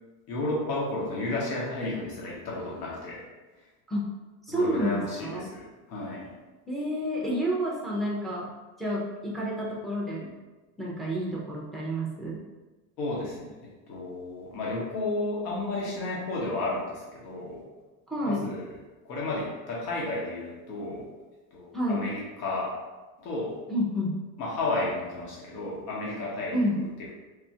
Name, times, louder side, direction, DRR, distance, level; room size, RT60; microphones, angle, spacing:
voice 1, 0.3-3.1 4.5-5.6 5.9-6.3 13.0-13.5 13.9-17.6 18.2-18.7 19.0-21.1 21.5-22.7 23.2-23.5 24.4-26.8, left 2 dB, 90° left, -5 dB, 1.0 m, -32 dB
voice 2, 4.4-5.5 6.7-8.5 8.8-10.3 10.8-12.4 18.1-18.5 21.7-22.0 23.7-24.2 26.5-26.8, equal, ahead, -5 dB, 0.3 m, -29 dB
3.4 x 2.3 x 2.6 m, 1.2 s
supercardioid pair, 120°, 45 cm